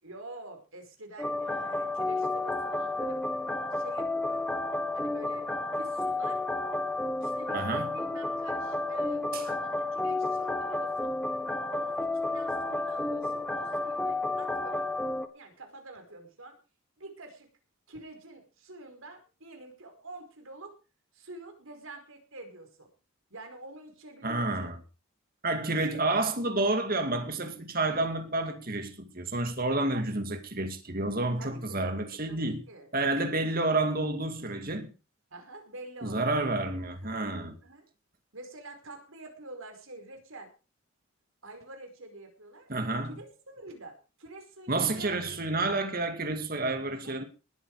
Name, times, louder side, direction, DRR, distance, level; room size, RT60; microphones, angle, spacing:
voice 1, 0.0-3.2 3.7-4.6 4.9-5.5 5.7-6.4 7.2-11.1 11.7-14.9 15.3-16.6 17.0-17.5 17.9-20.7 21.1-22.9 23.3-24.7 25.7-26.0 29.8-30.1 31.4-32.9 35.3-36.5 36.9-37.2 37.6-37.9 38.3-40.5 41.4-45.4 47.0-47.2, right 2 dB, 70° right, 5.0 m, -47 dB
sound 1, 1.2-15.3, left 2 dB, 5° left, 1.4 m, -31 dB
voice 2, 7.5-7.9 24.2-24.8 25.4-32.6 32.9-34.9 36.0-37.6 42.7-43.2 44.7-47.2, right 2 dB, 40° right, 2.3 m, -29 dB
19.5 x 9.2 x 4.9 m
head